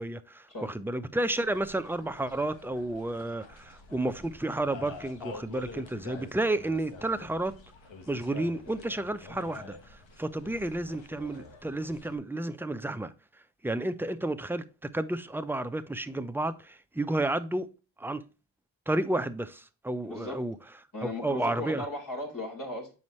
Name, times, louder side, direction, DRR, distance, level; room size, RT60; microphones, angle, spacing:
voice 1, 0.0-7.5 8.1-13.1 13.6-14.6 14.9-17.7 18.0-18.2 18.9-20.5 21.2-21.9, right 2 dB, 5° right, 0.6 m, -31 dB
sound 1, 1.4-12.2, left 3 dB, 65° left, 1.5 m, -47 dB
voice 2, 20.0-20.5 20.9-22.9, left 2 dB, 40° left, 3.7 m, -37 dB
7.1 x 5.3 x 3.1 m
cardioid pair, 60°, 48 cm